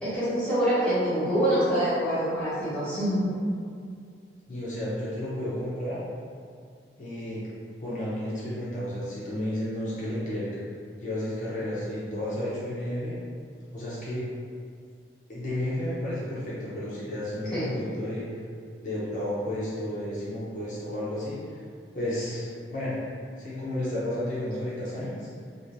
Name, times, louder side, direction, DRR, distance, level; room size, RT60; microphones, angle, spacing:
voice 1, 0.0-3.3 17.5-17.7, equal, 5° left, -12 dB, 0.8 m, -25 dB
voice 2, 4.5-6.0 7.0-7.4 7.8-10.5 11.0-13.2 13.7-14.2 15.3-18.2 18.8-21.4 21.9-23.0 23.4-25.3, left 1 dB, 40° left, -9 dB, 0.6 m, -32 dB
3.1 x 2.5 x 2.5 m, 2.2 s
head